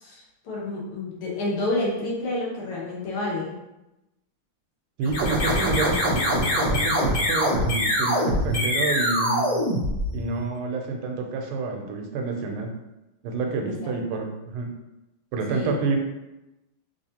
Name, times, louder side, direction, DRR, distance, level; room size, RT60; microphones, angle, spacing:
voice 1, 0.0-3.6 13.8-13.9 15.5-15.8, left 2 dB, 80° left, -4 dB, 1.8 m, -29 dB
sound 1, 5.0-10.5, equal, 50° left, 1.2 m, -24 dB
voice 2, 5.0-9.6 10.1-12.7 13.2-14.7 15.3-16.0, right 4 dB, 80° right, 3 dB, 1.4 m, -28 dB
3.4 x 3.1 x 2.8 m, 0.96 s
omnidirectional pair, 2.4 m